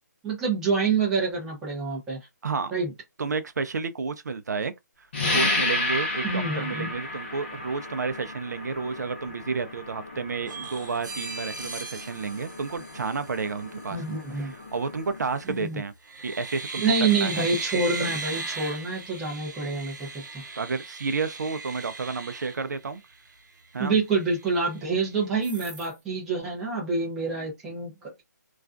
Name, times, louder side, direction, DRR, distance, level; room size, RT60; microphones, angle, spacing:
voice 1, 0.2-2.2 2.7-2.9 6.2-6.9 13.9-14.5 15.4-15.8 16.8-20.4 23.8-28.2, right 4 dB, 5° right, 0.5 m, -27 dB
voice 2, 3.2-4.7 5.3-15.9 16.2-16.8 17.1-17.5 20.6-23.0 23.7-24.0, right 4 dB, 65° right, 0.5 m, -31 dB
sound 1, 5.1-15.4, left 2 dB, 40° left, 0.8 m, -33 dB
sound 2, 10.5-13.5 15.3-15.7 16.0-23.3 23.7-23.8 24.1-25.0 25.4-25.9, right 3 dB, 90° right, 0.8 m, -38 dB
2.4 x 2.2 x 2.4 m
hypercardioid pair, 170°, 10 cm